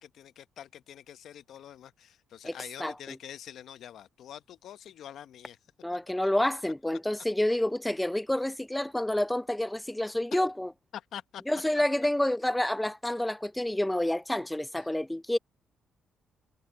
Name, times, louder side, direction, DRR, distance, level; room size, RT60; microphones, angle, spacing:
voice 1, 0.0-5.6 10.3-10.4 10.9-11.4 14.7-14.8, left 10 dB, 70° left, 0.9 m, -45 dB
voice 2, 2.8-3.2 5.8-10.7 11.5-15.4, left 1 dB, 5° left, 0.4 m, -28 dB
cardioid pair, 90°, 0 cm